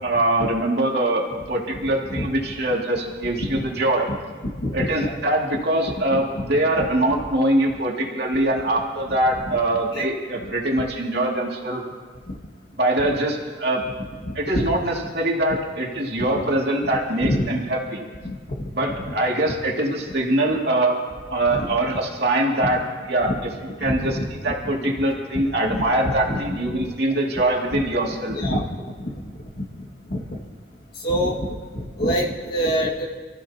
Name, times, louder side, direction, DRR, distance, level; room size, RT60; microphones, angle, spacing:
voice 1, 0.0-4.1 4.7-11.8 12.8-13.9 14.3-18.0 18.7-21.0 21.3-22.8 23.1-24.2 24.4-28.4, right 1 dB, 60° right, -1 dB, 2.6 m, -23 dB
voice 2, 1.8-2.3 3.4-3.6 4.6-5.2 6.1-6.2 6.8-6.9 9.5-9.6 9.9-10.1 12.3-12.4 14.2-14.7 16.3-16.5 17.2-17.5 18.2-19.1 21.5-21.8 23.2-23.4 23.8-24.3 25.3-26.9 27.7-27.8 28.3-28.6 29.0-29.2 30.1-30.2 31.0-31.5 31.7-33.0, equal, 55° left, -4 dB, 2.0 m, -27 dB
28.5 x 15.0 x 3.0 m, 1.5 s
head